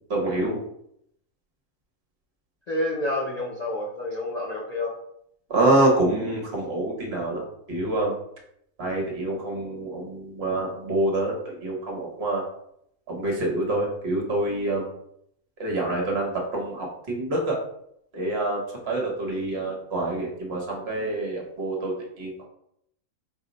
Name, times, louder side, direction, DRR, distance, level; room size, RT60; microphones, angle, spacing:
voice 1, 0.1-0.6 5.5-7.4 7.7-8.2 8.8-12.4 13.1-14.9 15.6-17.6 18.1-22.4, right 2 dB, 55° right, 0 dB, 1.0 m, -26 dB
voice 2, 2.7-5.0, left 1 dB, 70° left, -3 dB, 0.4 m, -29 dB
4.4 x 2.1 x 3.8 m, 0.74 s
omnidirectional pair, 1.4 m